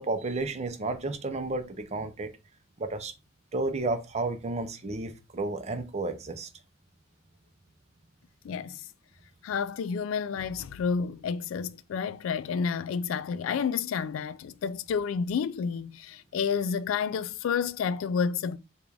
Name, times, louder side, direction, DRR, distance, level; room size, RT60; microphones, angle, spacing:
voice 1, 0.0-2.3 2.8-3.1 3.5-6.5, right 2 dB, 35° right, 0.6 m, -32 dB
voice 2, 8.4-8.8 9.4-18.6, left 6 dB, 80° left, 0.3 m, -30 dB
5.0 x 2.4 x 3.4 m
head